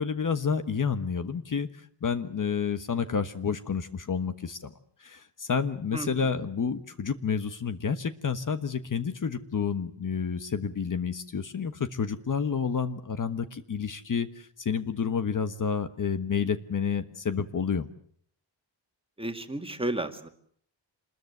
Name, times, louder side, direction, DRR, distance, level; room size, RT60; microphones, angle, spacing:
voice 1, 0.0-1.7 2.0-4.7 5.0-17.9, left 6 dB, 45° left, 10 dB, 1.3 m, -29 dB
voice 2, 19.2-20.3, right 1 dB, 10° right, 6 dB, 2.1 m, -32 dB
27.0 x 21.0 x 8.1 m, 0.62 s
wide cardioid pair, 165°, 43 cm